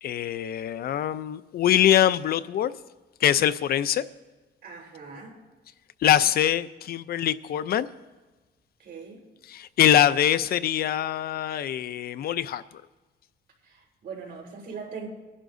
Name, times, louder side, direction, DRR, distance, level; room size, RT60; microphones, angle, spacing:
voice 1, 0.0-2.7 3.2-4.0 6.0-7.9 9.5-12.6, left 11 dB, 55° left, 14 dB, 0.5 m, -23 dB
voice 2, 4.6-5.4 8.8-9.2 13.6-15.1, right 5 dB, 55° right, 0 dB, 4.1 m, -40 dB
24.0 x 11.0 x 2.6 m, 1.2 s
cardioid pair, 140°, 19 cm